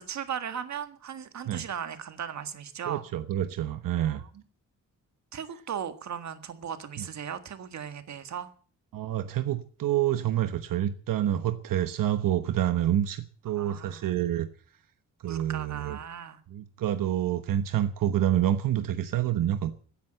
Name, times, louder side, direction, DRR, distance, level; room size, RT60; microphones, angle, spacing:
voice 1, 0.0-3.1 4.0-4.4 5.3-8.5 13.5-14.0 15.2-16.4, right 8 dB, 55° right, 1.7 m, -37 dB
voice 2, 2.9-4.2 7.0-7.1 8.9-14.5 15.2-16.0 16.5-19.7, right 11 dB, 85° right, 1.1 m, -27 dB
16.0 x 10.5 x 7.7 m
wide cardioid pair, 150°, 33 cm